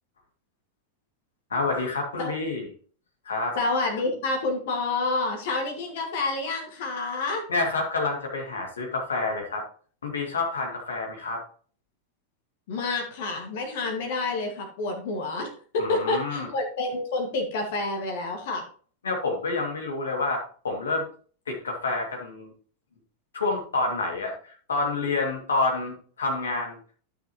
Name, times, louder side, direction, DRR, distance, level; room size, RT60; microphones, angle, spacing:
voice 1, 1.5-2.7 3.3-3.6 7.5-9.6 10.0-11.4 15.8-16.5 19.0-21.1 21.5-22.5 23.3-26.8, left 3 dB, 70° left, 1 dB, 2.3 m, -28 dB
voice 2, 3.6-7.4 12.7-18.6, left 3 dB, 55° left, 3 dB, 1.9 m, -28 dB
12.5 x 6.2 x 3.0 m, 0.44 s
figure-of-eight pair, 90°, 0 cm